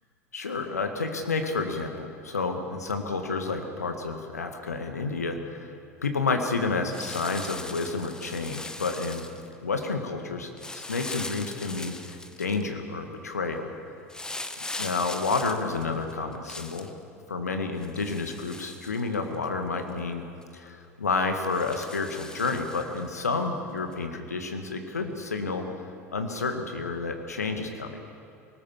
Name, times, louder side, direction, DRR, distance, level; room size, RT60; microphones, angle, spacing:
voice 1, 0.3-5.7 6.0-9.3 9.6-13.7 14.8-17.0 17.3-20.2 20.5-25.6 26.1-28.0, left 4 dB, 80° left, 5 dB, 1.9 m, -30 dB
sound 1, 6.9-9.5 10.6-12.6 14.1-16.9 17.8-19.4 19.9-20.0 20.4-20.5 21.4-23.1 23.9-24.0, left 2 dB, 10° left, 1.0 m, -40 dB
21.5 x 19.0 x 7.3 m, 2.5 s
figure-of-eight pair, 75°, 8 cm